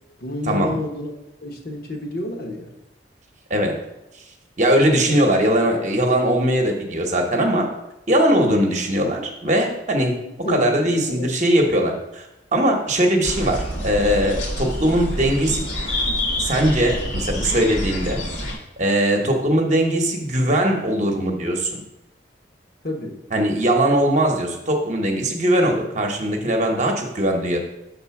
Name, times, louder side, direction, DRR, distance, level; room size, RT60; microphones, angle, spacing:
voice 1, 0.2-1.1 1.4-2.7 4.9-5.2 10.2-11.3 22.8-23.2, left 1 dB, 55° left, 2 dB, 1.1 m, -30 dB
voice 2, 4.6-7.7 8.1-10.2 10.5-12.3 12.5-15.6 16.4-18.2 18.8-21.8 23.3-27.6, right 1 dB, 40° right, 2 dB, 0.9 m, -20 dB
sound 1, 13.2-18.5, left 1 dB, 90° left, 2.1 m, -27 dB
6.6 x 3.9 x 5.8 m, 0.91 s
head